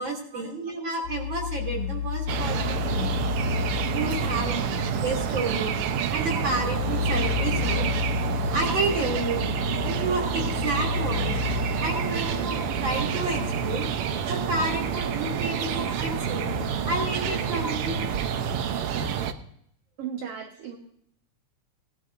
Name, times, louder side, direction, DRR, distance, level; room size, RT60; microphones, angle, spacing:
voice 1, 0.0-3.2 3.9-4.7 5.0-5.8 6.1-7.8 8.5-9.5 9.8-11.4 11.8-13.9 14.3-16.5 16.9-18.0, right 2 dB, 40° right, 1 dB, 3.5 m, -30 dB
sound 1, 1.0-18.3, left 9 dB, 75° left, 1.8 m, -33 dB
sound 2, 2.3-19.3, right 8 dB, 90° right, 1.2 m, -28 dB
voice 2, 20.0-20.8, right 7 dB, 60° right, 1 dB, 2.0 m, -36 dB
19.0 x 12.5 x 2.6 m, 0.69 s
omnidirectional pair, 3.5 m